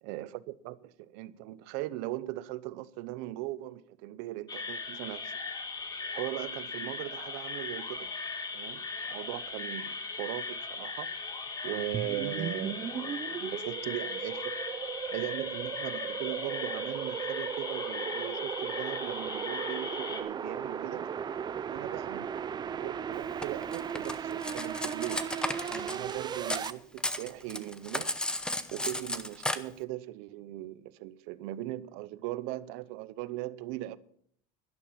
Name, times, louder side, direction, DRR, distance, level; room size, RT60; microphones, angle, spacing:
voice 1, 0.0-5.3 6.1-8.1 8.5-11.1 11.6-14.6 15.1-21.1 21.7-22.3 22.7-25.4 25.7-28.1 28.7-34.0, right 16 dB, 85° right, 0.8 m, -39 dB
sound 1, 4.5-20.2, left 4 dB, 20° left, 1.7 m, -38 dB
sound 2, 11.9-26.7, right 8 dB, 25° right, 0.5 m, -36 dB
Cutlery silverware, 23.4-26.7 27.0-29.6, left 1 dB, 5° left, 0.8 m, -34 dB
12.0 x 11.0 x 5.8 m
cardioid pair, 140°, 17 cm